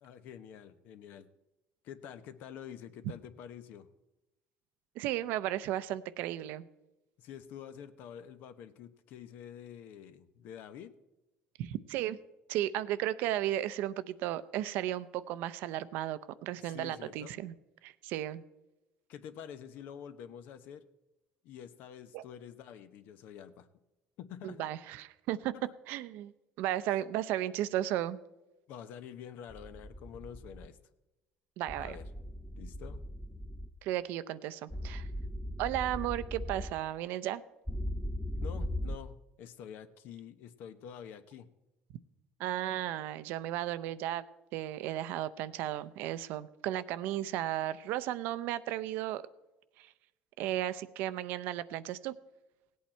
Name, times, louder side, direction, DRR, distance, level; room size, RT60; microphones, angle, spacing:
voice 1, 0.0-1.3 1.8-3.9 7.2-10.9 16.5-17.4 19.1-20.8 21.4-23.7 24.2-24.6 25.5-25.6 26.9-27.0 28.7-30.8 31.8-32.1 32.6-33.1 38.4-41.5, left 9 dB, 70° left, 11 dB, 0.9 m, -48 dB
voice 2, 5.0-6.7 11.6-12.2 12.5-17.5 17.8-18.4 22.1-22.2 24.4-25.5 25.9-26.3 26.6-28.2 31.6-32.0 33.8-35.1 35.6-37.4 42.4-44.2 44.5-49.2 49.8-49.9 50.4-52.1, right 13 dB, 75° right, 15 dB, 0.6 m, -34 dB
sound 1, 29.5-30.7 31.7-33.7 34.7-36.7 37.7-39.0, left 1 dB, ahead, 0.5 m, -39 dB
17.0 x 8.5 x 4.4 m, 1.0 s
cardioid pair, 110°, 3 cm